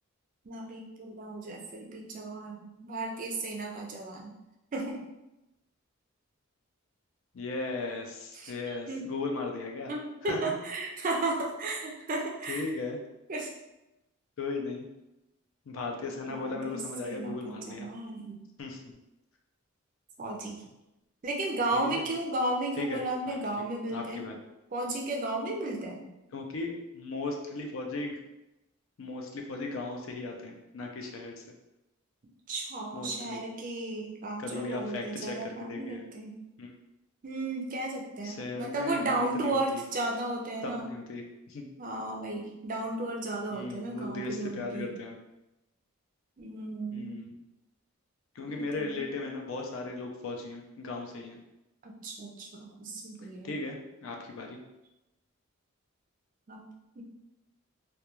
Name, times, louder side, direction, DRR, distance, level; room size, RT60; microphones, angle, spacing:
voice 1, 0.4-4.3 4.7-5.0 8.3-9.1 9.9-12.6 13.3-13.5 16.3-18.4 20.2-20.6 21.2-24.2 24.7-26.0 32.5-36.3 37.2-40.9 41.8-44.9 46.4-47.1 48.4-49.0 51.8-53.5 56.5-56.6 57.0-57.1, right 2 dB, 40° right, -1 dB, 0.4 m, -34 dB
voice 2, 7.3-9.9 10.3-10.6 12.5-13.0 14.4-14.9 15.7-17.9 18.6-18.9 21.7-22.1 22.8-23.0 23.3-23.4 23.9-24.3 26.3-28.1 29.0-31.4 32.9-33.4 34.4-36.0 36.6-36.7 38.2-39.8 40.6-41.6 43.5-45.2 46.9-47.3 48.4-51.4 53.4-54.6, left 3 dB, 70° left, 2 dB, 0.4 m, -37 dB
2.3 x 2.2 x 2.9 m, 0.95 s
head